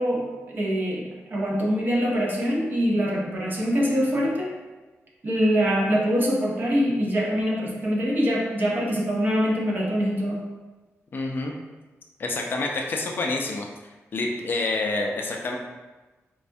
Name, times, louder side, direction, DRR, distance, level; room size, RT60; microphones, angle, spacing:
voice 1, 0.0-4.5 5.2-10.4, equal, 40° right, -3 dB, 0.7 m, -24 dB
voice 2, 11.1-11.5 12.2-13.7 14.1-15.6, left 2 dB, 45° left, 1 dB, 0.3 m, -27 dB
4.1 x 2.2 x 2.6 m, 1.2 s
wide cardioid pair, 165°, 5 cm